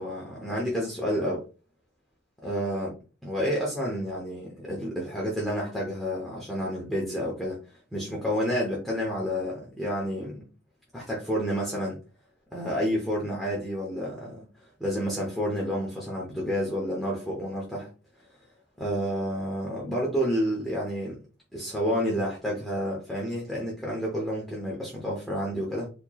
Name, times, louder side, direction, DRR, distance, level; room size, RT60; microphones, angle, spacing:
voice 1, 0.0-1.4 2.4-2.9 3.2-7.6 7.9-10.4 10.9-12.0 12.5-14.5 14.8-17.9 18.8-21.2 21.5-25.9, equal, ahead, 0.8 m, -30 dB
4.3 x 2.9 x 2.3 m
head